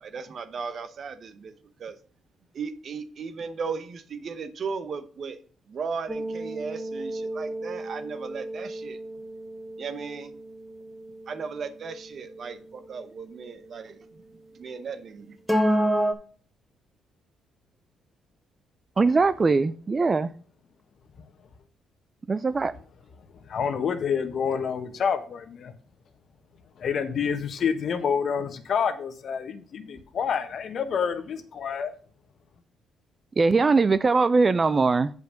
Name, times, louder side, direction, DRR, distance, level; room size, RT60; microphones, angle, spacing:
voice 1, 0.0-1.5 1.8-2.0 2.5-5.4 5.7-9.0 9.8-10.3 11.3-14.2 14.5-15.4, right 5 dB, 55° right, 1.0 m, -36 dB
sound 1, 6.1-12.4 15.5-16.1, equal, 5° left, 1.4 m, -30 dB
voice 2, 19.0-20.3 22.3-22.7 33.4-35.1, right 4 dB, 30° right, 0.4 m, -21 dB
voice 3, 23.5-25.7 26.8-31.9, left 6 dB, 55° left, 1.2 m, -28 dB
8.0 x 5.3 x 5.0 m
cardioid pair, 90°, 0 cm